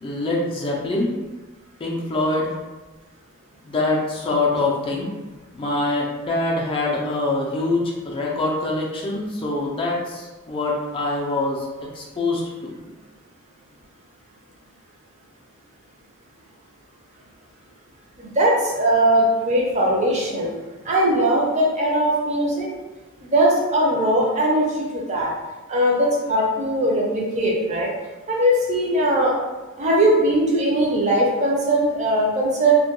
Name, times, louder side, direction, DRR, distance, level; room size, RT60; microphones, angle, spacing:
voice 1, 0.0-1.1 1.8-2.5 3.6-5.1 5.5-11.7 11.9-12.4, left 2 dB, 25° left, -3 dB, 0.3 m, -24 dB
voice 2, 18.2-20.5 20.8-22.7 23.3-25.3 25.7-27.9 28.3-29.4 29.8-32.8, right 1 dB, 35° right, -2 dB, 0.5 m, -20 dB
2.2 x 2.1 x 2.9 m, 1.2 s
head